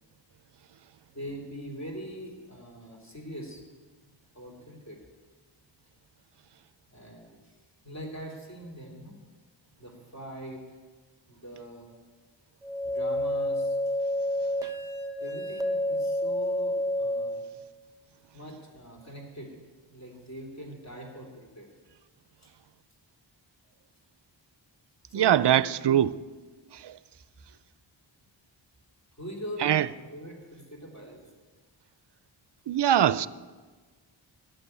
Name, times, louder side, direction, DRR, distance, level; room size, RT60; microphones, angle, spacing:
voice 1, 1.1-3.6 4.3-5.0 6.9-7.3 7.8-9.2 9.8-10.6 11.3-11.9 12.8-13.8 15.2-17.4 18.3-19.6 19.9-21.7 22.4-22.5 25.1-25.6 29.2-31.3, equal, 35° left, 3.3 m, -42 dB
sound 1, 12.6-17.6, left 1 dB, 5° right, 1.1 m, -29 dB
voice 2, 25.1-26.1 26.8-26.9 29.6-29.9 32.7-33.3, right 11 dB, 60° right, 0.5 m, -22 dB
12.5 x 7.0 x 9.9 m
wide cardioid pair, 70°, 47 cm